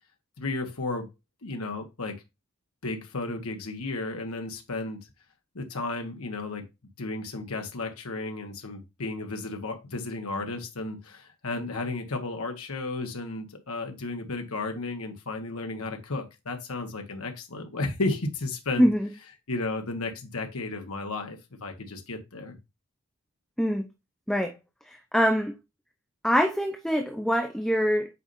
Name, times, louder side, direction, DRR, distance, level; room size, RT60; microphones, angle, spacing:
voice 1, 0.4-1.1 1.4-2.2 2.8-5.0 5.5-6.6 7.0-18.9 19.5-22.6, left 2 dB, 90° left, 1.3 m, -33 dB
voice 2, 18.8-19.1 23.6-23.9 24.3-24.5 24.9-25.5 26.2-28.1, equal, ahead, 0.8 m, -24 dB
8.3 x 5.4 x 2.6 m
head